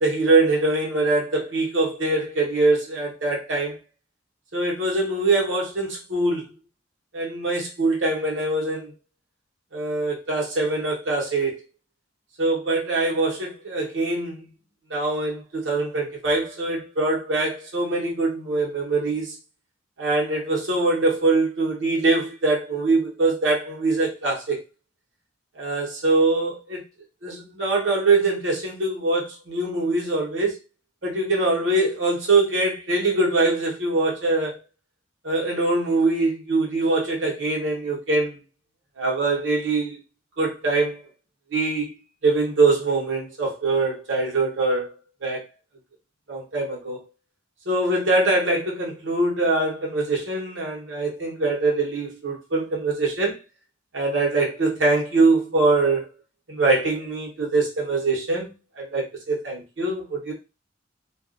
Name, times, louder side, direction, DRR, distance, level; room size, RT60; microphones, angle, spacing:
voice 1, 0.0-3.8 4.5-6.4 7.1-8.9 9.7-11.6 12.4-14.5 14.9-19.4 20.0-24.6 25.6-26.8 27.2-30.6 31.0-34.6 35.2-38.4 39.0-40.0 40.4-41.0 41.5-41.9 42.2-44.9 45.2-45.4 46.3-47.0 47.7-53.4 53.9-56.1 56.5-60.3, right 2 dB, 70° right, 1.2 m, -23 dB
2.5 x 2.4 x 3.8 m
head